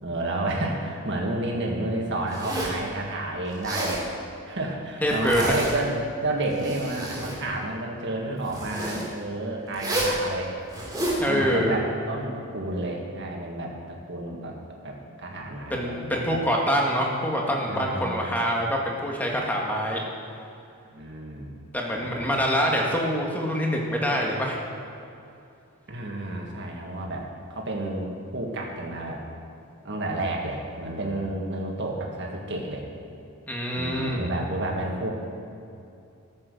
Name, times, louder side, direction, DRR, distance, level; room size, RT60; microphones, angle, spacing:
voice 1, 0.0-4.1 4.5-5.9 6.2-10.5 11.2-14.6 14.8-16.2 17.7-18.4 20.9-21.5 22.0-22.4 25.9-29.2 29.8-32.8 33.7-35.1, right 2 dB, 50° right, 0 dB, 1.8 m, -31 dB
Zipper (clothing), 2.3-2.8 3.5-4.0 5.0-5.8 6.4-7.4 8.5-9.0 9.7-10.2 10.7-11.2, right 1 dB, 15° right, 3.1 m, -30 dB
voice 2, 5.0-5.5 11.2-11.8 15.7-20.0 21.7-24.6 33.5-34.3, equal, 10° left, -1 dB, 1.5 m, -25 dB
14.0 x 7.7 x 6.4 m, 2.6 s
head